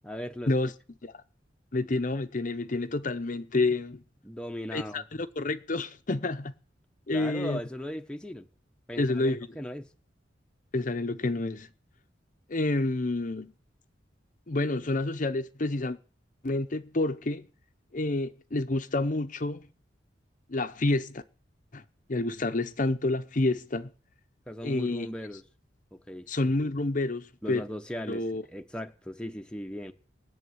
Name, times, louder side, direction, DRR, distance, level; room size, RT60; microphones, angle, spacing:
voice 1, 0.0-0.7 4.2-5.0 7.1-8.5 8.9-9.9 24.5-25.4 25.9-26.3 27.4-29.9, equal, 5° left, 0.9 m, -38 dB
voice 2, 1.7-4.0 4.7-6.5 7.1-7.6 9.0-9.5 10.7-11.7 12.5-13.5 14.5-16.0 16.4-17.5 17.9-19.6 20.5-21.2 21.7-21.8 22.1-23.9 24.6-25.1 26.3-27.6 28.1-28.4, left 2 dB, 45° left, 0.7 m, -29 dB
20.0 x 7.2 x 9.5 m
head